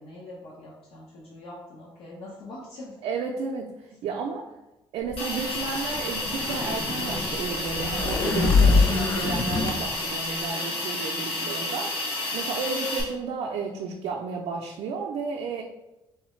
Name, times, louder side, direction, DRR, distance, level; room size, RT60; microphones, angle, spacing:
voice 1, 0.0-3.0 4.4-4.5 10.4-10.8, left 1 dB, 75° left, -5 dB, 0.8 m, -43 dB
voice 2, 3.0-3.7 4.0-4.5 4.9-11.9 12.3-15.6, right 5 dB, 70° right, 0 dB, 0.4 m, -32 dB
sound 1, 5.1-9.8, left 4 dB, 25° left, 0.3 m, -24 dB
Hiss, 5.2-13.0, left 2 dB, 55° left, 1.3 m, -31 dB
3.5 x 3.2 x 3.1 m, 0.97 s
cardioid pair, 160°, 10 cm